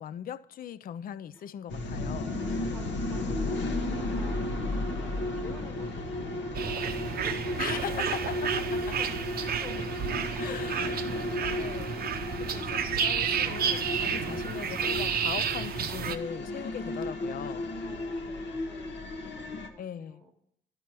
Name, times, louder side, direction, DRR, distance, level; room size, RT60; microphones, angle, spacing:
voice 1, 0.0-2.3 7.6-9.0 10.4-12.1 12.4-17.7 19.8-20.2, left 10 dB, 45° left, 0.4 m, -40 dB
sound 1, 1.7-19.7, left 2 dB, 65° left, 1.0 m, -34 dB
voice 2, 2.0-6.9 7.8-8.1 8.8-9.1 9.5-9.8 10.3-10.6 10.9-12.0 16.7-16.9 17.8-20.3, left 1 dB, 10° left, 1.3 m, -50 dB
sound 2, 6.5-16.2, right 7 dB, 50° right, 0.6 m, -31 dB
11.5 x 4.5 x 4.4 m
cardioid pair, 90°, 20 cm